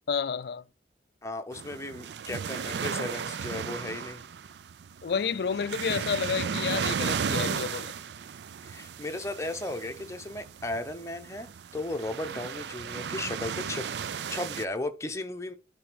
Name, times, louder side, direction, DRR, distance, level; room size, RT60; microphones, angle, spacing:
voice 1, 0.1-0.6 5.0-7.9, left 6 dB, 65° left, 0.4 m, -30 dB
voice 2, 1.2-4.2 8.6-11.5 11.7-13.9 14.3-15.5, left 2 dB, 15° left, 0.8 m, -35 dB
sound 1, 1.5-14.7, right 7 dB, 80° right, 0.4 m, -35 dB
9.6 x 3.4 x 6.2 m
head